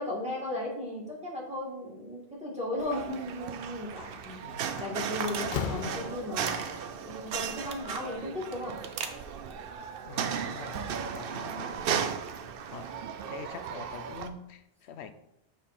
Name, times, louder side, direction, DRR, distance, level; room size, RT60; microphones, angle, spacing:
voice 1, 0.0-6.6 7.0-8.8, left 1 dB, 5° right, -6 dB, 2.0 m, -36 dB
sound 1, 2.8-14.3, right 7 dB, 65° right, 0.7 m, -36 dB
sound 2, 2.8-11.3 11.6-12.4, right 6 dB, 90° right, 1.0 m, -44 dB
Slam, 4.1-4.4 4.8-6.6, left 7 dB, 60° left, 0.6 m, -36 dB
voice 2, 10.1-11.9 12.7-12.9 13.3-15.1, left 6 dB, 85° left, 10 dB, 0.9 m, -45 dB
7.2 x 3.8 x 4.3 m, 0.83 s
omnidirectional pair, 1.1 m